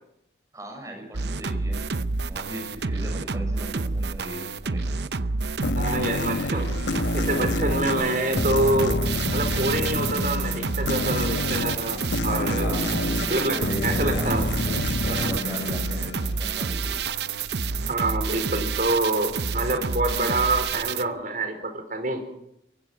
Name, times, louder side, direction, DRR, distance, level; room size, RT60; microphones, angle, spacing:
voice 1, 0.5-1.9 2.2-5.1 12.6-17.0, right 1 dB, 20° right, 2 dB, 6.9 m, -37 dB
sound 1, 1.1-21.0, right 4 dB, 70° right, 0.8 m, -29 dB
sound 2, 5.6-16.8, left 2 dB, 75° left, 1.1 m, -29 dB
voice 2, 5.7-6.7 7.1-9.0 9.3-12.8 13.3-14.5 15.0-15.3 17.9-22.2, right 2 dB, 50° right, 6 dB, 4.6 m, -26 dB
24.0 x 23.0 x 6.2 m, 0.78 s
head